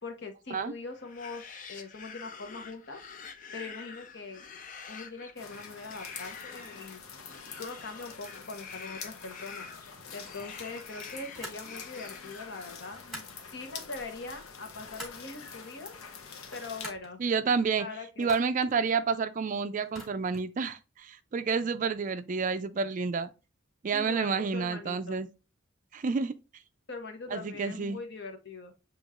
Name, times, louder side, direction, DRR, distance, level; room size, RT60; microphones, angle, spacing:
voice 1, 0.0-3.0 3.5-4.4 4.9-7.0 7.6-15.9 16.2-17.2 17.8-18.4 23.9-25.2 26.9-28.7, left 3 dB, 55° left, 1.0 m, -42 dB
sound 1, 0.9-13.0, left 6 dB, 40° left, 0.5 m, -47 dB
sound 2, 5.4-16.9, left 5 dB, 85° left, 0.8 m, -46 dB
sound 3, 11.3-11.7 12.9-13.4 14.4-15.3 16.4-17.1 18.2-18.7 19.8-20.5, equal, ahead, 1.5 m, -46 dB
voice 2, 17.2-17.9 18.2-23.3 23.8-25.3 25.9-26.3 27.3-28.0, right 5 dB, 40° right, 0.3 m, -29 dB
7.0 x 3.0 x 2.4 m
head